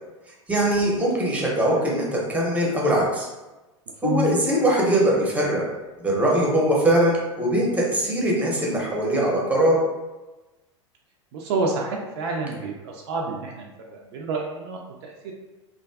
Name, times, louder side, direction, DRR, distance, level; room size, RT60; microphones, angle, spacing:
voice 1, 0.5-3.3 4.0-5.6 6.0-9.8, right 1 dB, 10° right, -3 dB, 0.7 m, -21 dB
sound 1, 4.0-5.1, left 4 dB, 80° left, 0.5 m, -28 dB
voice 2, 11.3-15.3, right 3 dB, 55° right, -1 dB, 0.4 m, -29 dB
2.4 x 2.3 x 2.2 m, 1.1 s
figure-of-eight pair, 85°, 16 cm